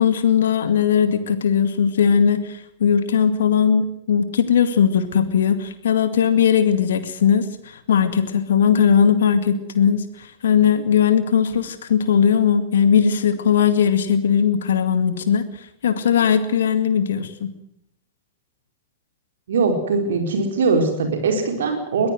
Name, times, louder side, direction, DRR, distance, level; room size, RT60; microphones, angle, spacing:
voice 1, 0.0-17.5, left 7 dB, 65° left, 10 dB, 2.2 m, -19 dB
voice 2, 19.5-22.1, right 4 dB, 65° right, 4 dB, 4.4 m, -21 dB
21.5 x 16.0 x 9.4 m, 0.77 s
figure-of-eight pair, 100°, 0 cm